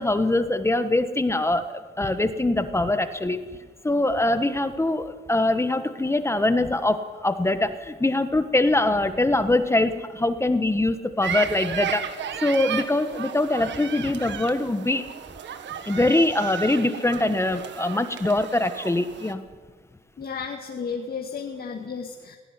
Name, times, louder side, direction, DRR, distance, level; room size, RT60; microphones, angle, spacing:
voice 1, 0.0-3.5 3.8-12.0 12.4-15.1 15.9-19.4, left 2 dB, 15° left, 10 dB, 1.3 m, -23 dB
sound 1, 11.2-19.3, right 8 dB, 65° right, 1.5 m, -34 dB
voice 2, 20.2-22.4, left 5 dB, 50° left, 2 dB, 2.1 m, -33 dB
17.5 x 17.0 x 10.0 m, 1.4 s
cardioid pair, 90°, 20 cm